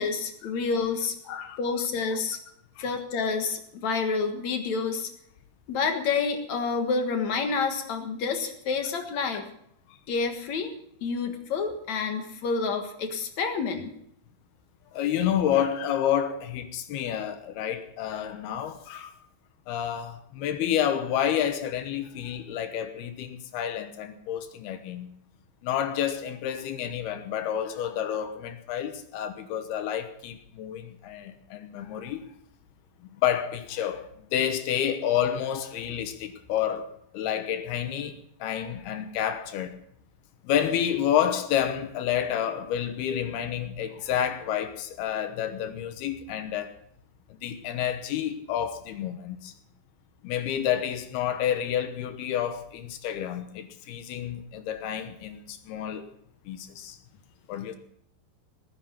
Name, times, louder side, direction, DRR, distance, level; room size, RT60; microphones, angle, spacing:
voice 1, 0.0-1.1 1.6-2.4 2.8-5.1 5.7-9.4 10.1-10.7 11.0-13.9, left 5 dB, 55° left, 2.1 m, -28 dB
voice 2, 1.3-1.6 2.8-2.9 14.9-19.1 19.7-25.2 25.6-32.3 33.0-39.8 40.4-46.7 47.3-49.5 50.2-56.1 56.5-57.0 57.5-57.8, left 10 dB, 70° left, 2.8 m, -29 dB
19.0 x 9.9 x 5.8 m
omnidirectional pair, 5.0 m